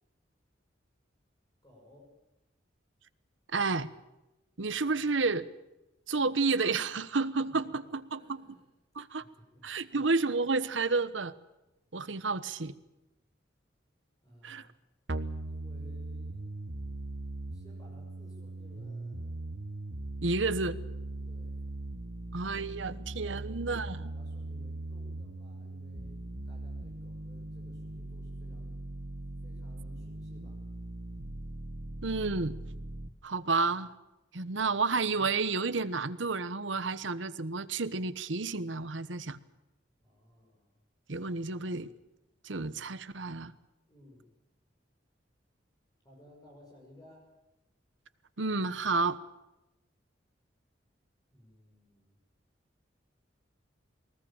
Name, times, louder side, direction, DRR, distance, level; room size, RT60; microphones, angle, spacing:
voice 1, 1.6-2.2 7.5-8.7 9.2-10.0 14.2-14.8 15.4-16.5 17.5-19.4 21.3-21.7 23.8-28.8 29.4-30.6 40.0-40.8 43.9-44.3 46.0-47.3 51.3-52.2, left 1 dB, 20° left, -1 dB, 6.5 m, -58 dB
voice 2, 3.5-3.9 4.6-5.5 6.1-8.2 8.9-9.2 9.6-11.3 11.9-12.7 14.4-14.7 20.2-20.8 22.3-24.0 32.0-32.6 33.2-33.9 34.3-39.4 41.1-41.9 42.4-43.5 48.4-49.2, right 3 dB, 85° right, 13 dB, 1.2 m, -30 dB
sound 1, 15.1-33.1, right 2 dB, 70° right, 1.4 m, -40 dB
22.5 x 20.0 x 8.8 m, 0.96 s
head